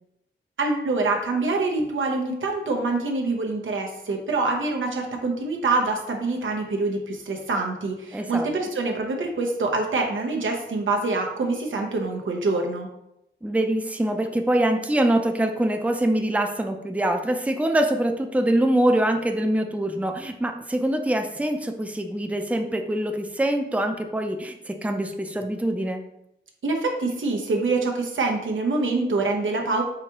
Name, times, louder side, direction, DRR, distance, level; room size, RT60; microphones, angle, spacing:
voice 1, 0.6-12.9 26.6-29.8, right 3 dB, 85° right, 1 dB, 0.8 m, -25 dB
voice 2, 8.1-8.5 13.4-26.0, right 1 dB, 5° right, 5 dB, 0.5 m, -24 dB
4.7 x 3.4 x 2.9 m, 0.82 s
cardioid pair, 50°, 20 cm